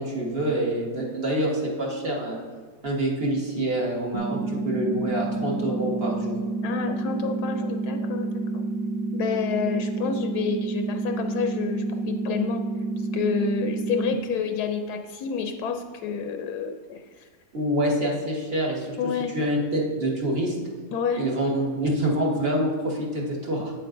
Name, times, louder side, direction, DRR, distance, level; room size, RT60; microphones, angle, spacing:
voice 1, 0.0-2.4 2.8-6.4 17.5-19.0 19.3-20.5 21.2-23.7, right 1 dB, 40° right, -3 dB, 1.4 m, -26 dB
sound 1, 4.1-14.1, right 3 dB, 70° right, 0.4 m, -29 dB
voice 2, 6.6-8.6 9.1-12.6 13.0-17.3 19.0-19.3 20.9-21.2, left 6 dB, 80° left, 5 dB, 1.1 m, -29 dB
8.9 x 7.5 x 2.5 m, 1.5 s
omnidirectional pair, 1.7 m